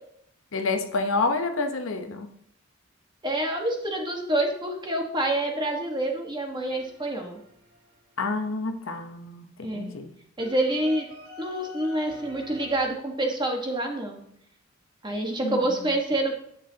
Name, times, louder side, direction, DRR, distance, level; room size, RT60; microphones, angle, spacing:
voice 1, 0.5-2.3 8.2-9.5 9.7-10.1 15.4-15.6, left 3 dB, 70° left, 6 dB, 0.9 m, -28 dB
voice 2, 3.2-7.4 9.6-9.9 10.4-11.1 11.4-14.2 15.0-16.4, right 1 dB, 20° right, 2 dB, 1.4 m, -27 dB
sound 1, 6.7-8.3 10.4-12.8, left 4 dB, 80° right, 2.3 m, -46 dB
10.0 x 8.4 x 2.8 m, 0.70 s
head